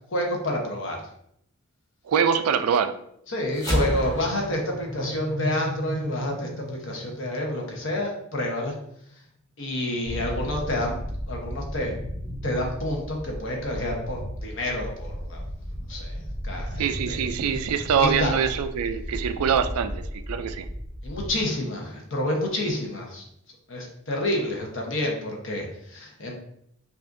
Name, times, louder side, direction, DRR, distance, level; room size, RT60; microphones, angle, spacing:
voice 1, 0.1-1.0 3.3-8.7 9.6-11.0 11.3-11.9 12.4-15.4 15.9-17.2 18.0-18.4 21.0-23.2 23.7-26.3, left 1 dB, 60° left, 1 dB, 0.9 m, -29 dB
voice 2, 2.1-2.9 16.8-20.7, right 7 dB, 90° right, 11 dB, 0.3 m, -24 dB
sound 1, 3.5-8.2, equal, 15° left, 1.0 m, -31 dB
sound 2, 10.1-21.3, equal, 10° right, 0.7 m, -35 dB
5.5 x 2.5 x 2.6 m, 0.73 s
head